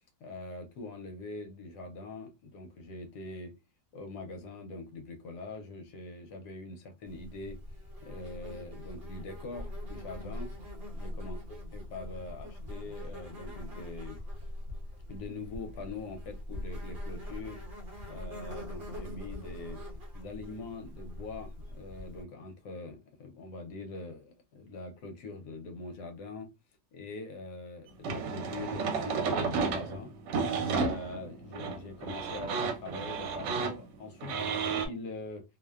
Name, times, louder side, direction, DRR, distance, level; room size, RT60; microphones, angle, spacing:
voice 1, 0.2-3.5 3.9-7.6 8.0-10.5 10.9-14.2 15.1-17.6 18.1-19.8 20.1-26.5 26.9-30.1 30.7-35.4, left 3 dB, 75° left, 1.2 m, -43 dB
Insect, 7.1-22.2, left 1 dB, 45° right, 0.8 m, -42 dB
sound 1, 28.0-34.9, right 5 dB, 75° right, 1.3 m, -32 dB
2.9 x 2.1 x 2.3 m
omnidirectional pair, 1.9 m